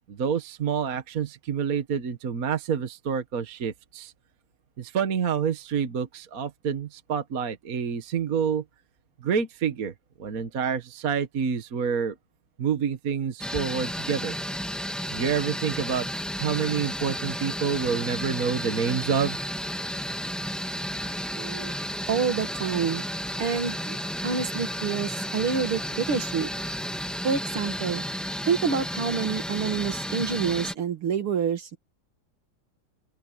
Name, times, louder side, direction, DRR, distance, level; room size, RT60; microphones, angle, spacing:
voice 1, 0.1-4.1 4.8-8.6 9.2-9.9 10.2-12.1 12.6-14.4 15.1-16.1 16.4-19.4, right 7 dB, 45° right, 1.6 m, -28 dB
sound 1, 13.4-30.7, equal, ahead, 1.5 m, -32 dB
voice 2, 21.1-21.7 22.1-23.0 23.4-24.0 24.2-26.5 27.2-28.0 28.5-31.8, right 6 dB, 80° right, 2.8 m, -27 dB
open air
omnidirectional pair, 2.4 m